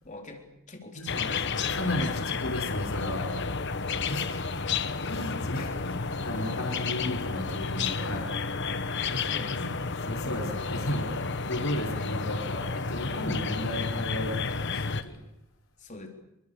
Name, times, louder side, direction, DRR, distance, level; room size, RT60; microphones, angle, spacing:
voice 1, 0.0-2.1 3.9-4.2 5.5-5.9 6.4-6.7 9.3-10.0 15.8-16.1, left 2 dB, 35° left, 4 dB, 3.8 m, -44 dB
sound 1, 1.1-15.0, left 4 dB, 50° left, 1.2 m, -31 dB
voice 2, 1.7-3.3 4.1-4.6 5.0-8.3 9.0-9.8 10.0-11.1 11.4-15.2, left 1 dB, 70° left, 3 dB, 4.2 m, -34 dB
27.5 x 24.5 x 6.9 m, 0.85 s
head